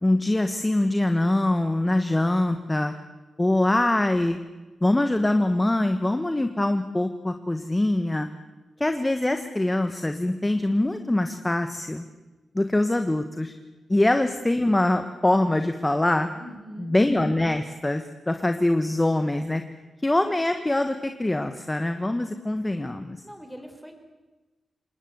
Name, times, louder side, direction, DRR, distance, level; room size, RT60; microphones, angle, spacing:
voice 1, 0.0-2.9 3.4-4.4 4.8-8.3 8.8-12.0 12.5-13.5 13.9-16.3 16.9-19.6 20.0-23.2, left 1 dB, 15° left, 8 dB, 1.2 m, -23 dB
voice 2, 16.3-17.0 23.2-24.0, equal, ahead, 6 dB, 4.4 m, -42 dB
27.0 x 20.0 x 8.1 m, 1.2 s
cardioid pair, 100°, 0 cm